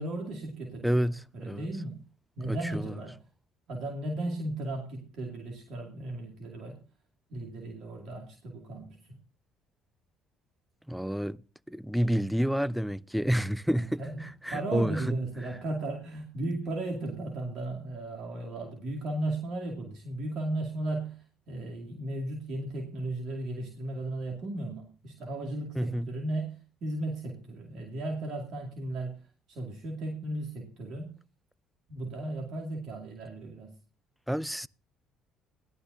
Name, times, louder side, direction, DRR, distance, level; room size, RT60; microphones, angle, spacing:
voice 1, 0.0-2.0 2.4-3.2 3.7-6.8 7.3-9.2 13.7-14.2 14.5-31.1 31.9-33.8, right 2 dB, 55° right, 2.4 m, -36 dB
voice 2, 0.8-1.6 2.5-2.9 10.9-11.4 11.7-15.2 25.8-26.1 34.3-34.7, equal, ahead, 0.5 m, -29 dB
17.5 x 11.5 x 2.7 m
figure-of-eight pair, 50°, 0 cm